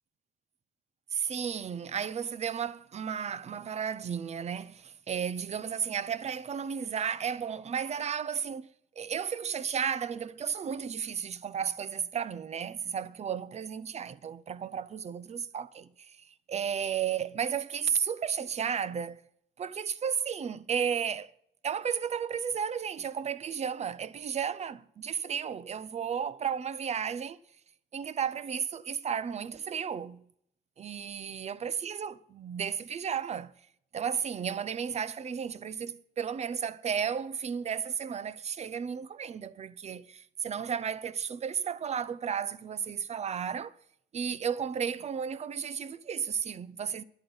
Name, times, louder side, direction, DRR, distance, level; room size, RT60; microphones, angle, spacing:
voice 1, 1.1-8.7 9.0-19.2 19.6-21.3 21.6-27.4 27.9-30.3 30.8-33.5 33.9-43.7 44.1-47.0, right 7 dB, 40° right, 0.9 m, -33 dB
11.5 x 8.5 x 9.6 m
cardioid pair, 95°, 18 cm